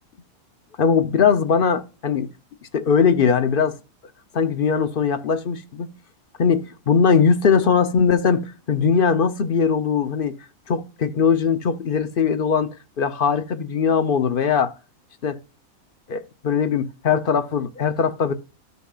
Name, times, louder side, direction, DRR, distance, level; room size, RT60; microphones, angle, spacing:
voice 1, 0.8-2.3 2.7-3.8 4.3-5.9 6.4-10.4 10.7-12.7 13.0-14.7 15.2-15.4 16.1-18.3, left 6 dB, 50° left, 0.7 m, -20 dB
14.0 x 5.4 x 2.3 m
omnidirectional pair, 1.5 m